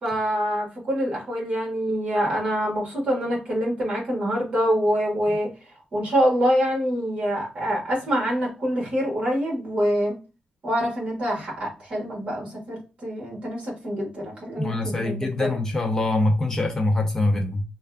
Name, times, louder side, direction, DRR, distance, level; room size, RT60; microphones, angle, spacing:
voice 1, 0.0-5.5 5.9-10.1 10.6-15.5, equal, 40° right, 1.6 m, -25 dB
voice 2, 14.6-17.6, left 2 dB, 20° left, 0.5 m, -24 dB
3.2 x 2.3 x 3.4 m
wide cardioid pair, 180°, 3 cm